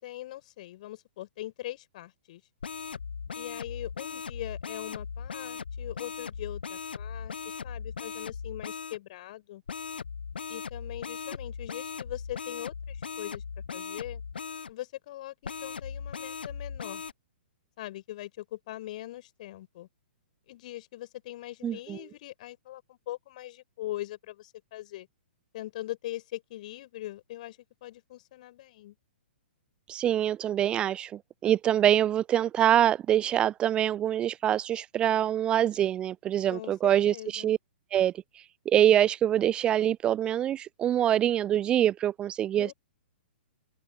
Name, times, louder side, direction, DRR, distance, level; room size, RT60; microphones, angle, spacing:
voice 1, 0.0-2.4 3.3-9.6 10.5-13.4 13.7-14.2 14.7-17.0 17.8-19.9 20.5-25.1 25.5-28.9 36.5-37.6 42.6-42.7, left 15 dB, 45° left, 5.9 m, -41 dB
sound 1, 2.6-9.0 9.7-14.7 15.4-17.1, left 6 dB, 70° left, 1.1 m, -38 dB
voice 2, 21.6-22.0 29.9-37.6 37.9-38.1 38.7-42.7, right 11 dB, 15° right, 0.3 m, -25 dB
open air
figure-of-eight pair, 115°, 6 cm